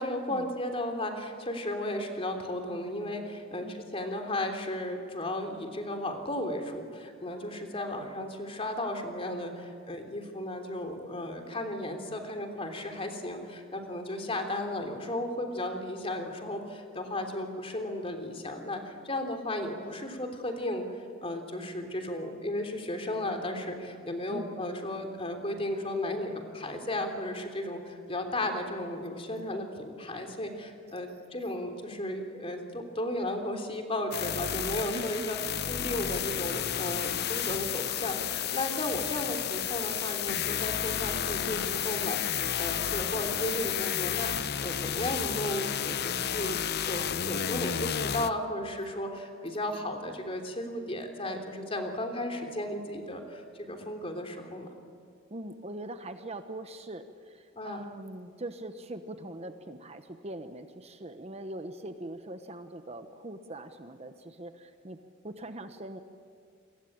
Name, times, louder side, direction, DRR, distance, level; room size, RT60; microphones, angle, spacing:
voice 1, 0.0-20.9 21.2-35.4 35.7-46.6 46.8-54.7 57.5-57.8, left 1 dB, 30° left, 5 dB, 3.3 m, -34 dB
voice 2, 3.6-3.9 24.3-24.5 34.5-35.4 55.3-65.0 65.2-66.0, right 1 dB, 30° right, 8 dB, 1.1 m, -42 dB
sound 1, 34.1-48.3, left 9 dB, 50° left, 0.8 m, -32 dB
28.0 x 23.5 x 8.8 m, 2.2 s
head